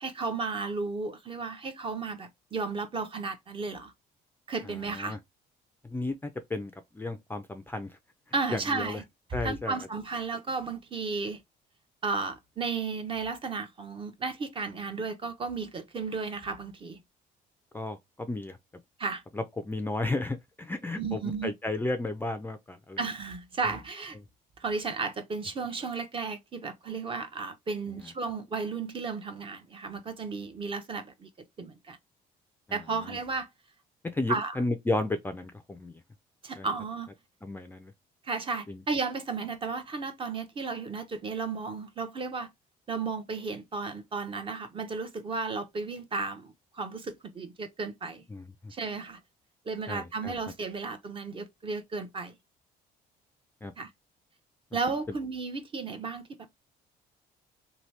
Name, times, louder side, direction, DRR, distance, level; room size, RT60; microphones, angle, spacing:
voice 1, 0.0-3.9 4.5-5.2 8.3-9.0 9.4-11.4 12.0-17.0 19.0-19.2 21.0-21.5 23.0-24.2 24.6-31.3 31.6-32.0 32.7-33.5 34.3-34.6 36.4-37.1 38.2-42.5 42.9-48.2 48.7-49.2 49.7-52.3 53.8-53.9 54.7-56.5, right 4 dB, 30° right, 0.7 m, -34 dB
voice 2, 5.8-8.0 8.5-9.0 9.3-9.8 17.7-18.6 19.3-23.0 32.7-32.8 33.1-33.2 34.1-36.0 36.6-36.7 37.4-37.9 38.7-38.8 48.3-48.7 49.9-50.3 53.6-53.7 55.1-55.2, left 2 dB, 10° left, 0.4 m, -33 dB
2.8 x 2.7 x 3.1 m
cardioid pair, 110°, 17 cm